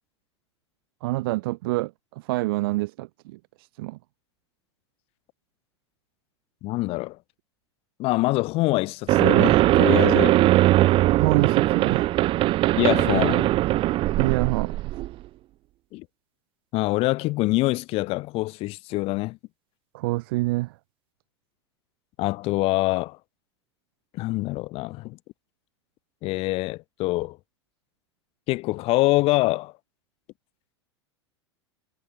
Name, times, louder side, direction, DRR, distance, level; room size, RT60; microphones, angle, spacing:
voice 1, 1.0-4.0 11.1-12.2 14.2-14.9 19.9-20.7, right 20 dB, 55° right, 4.4 m, -27 dB
voice 2, 6.6-7.2 8.0-10.4 12.8-13.5 15.9-16.1 16.7-19.4 22.2-23.2 24.1-25.2 26.2-27.4 28.5-29.7, left 20 dB, 40° left, 3.4 m, -25 dB
sound 1, 9.1-15.1, right 16 dB, 35° right, 1.8 m, -20 dB
figure-of-eight pair, 85°, 15 cm